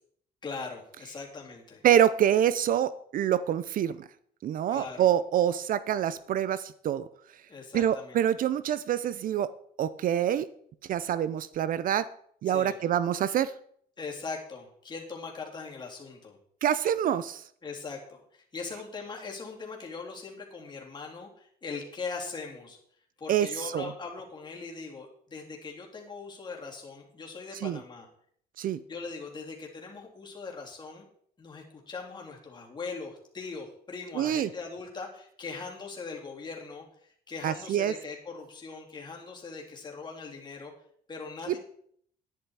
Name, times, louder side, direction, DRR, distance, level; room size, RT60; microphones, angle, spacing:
voice 1, 0.4-1.8 4.7-5.1 7.5-8.2 12.5-12.8 14.0-16.4 17.6-22.8 23.2-28.1 28.9-31.1 31.4-40.7 41.1-41.6, left 4 dB, 25° left, -1 dB, 3.3 m, -40 dB
voice 2, 1.8-4.1 4.4-7.1 7.7-9.5 9.8-10.5 10.9-12.1 12.4-13.5 16.6-17.4 23.3-23.9 27.6-27.8 28.6-28.8 34.2-34.5 37.4-37.9 41.5-41.6, right 10 dB, 55° right, 16 dB, 0.6 m, -26 dB
11.0 x 10.5 x 4.7 m, 0.63 s
cardioid pair, 110°, 17 cm